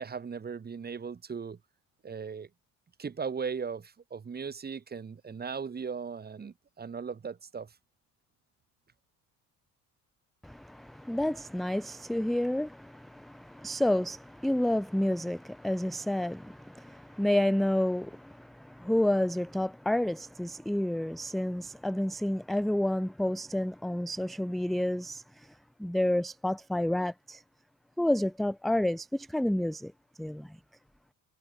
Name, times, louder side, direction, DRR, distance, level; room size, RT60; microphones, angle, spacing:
voice 1, 0.0-1.6 2.0-2.5 3.0-7.7, right 6 dB, 25° right, 3.6 m, -38 dB
voice 2, 10.4-25.5 25.8-27.4 28.0-29.9 30.2-30.6, left 1 dB, ahead, 0.3 m, -30 dB
cardioid pair, 125°, 34 cm